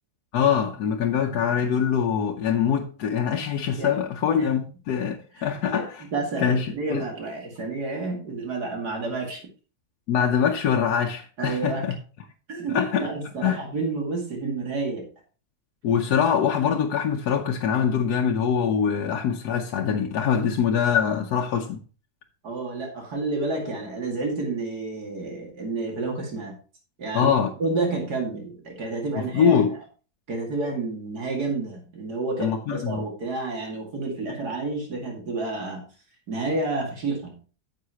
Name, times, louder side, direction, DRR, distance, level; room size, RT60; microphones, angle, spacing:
voice 1, 0.3-6.0 6.4-7.0 10.1-12.0 12.7-13.1 13.4-13.6 15.8-21.8 27.1-27.5 29.2-29.8 32.4-33.0, left 7 dB, 80° left, 1.3 m, -23 dB
voice 2, 6.1-9.4 11.4-11.8 12.5-15.1 22.4-26.5 27.0-27.3 27.6-29.6 30.3-35.8 36.3-37.4, right 3 dB, 85° right, 2.9 m, -30 dB
9.5 x 7.5 x 3.0 m
omnidirectional pair, 1.7 m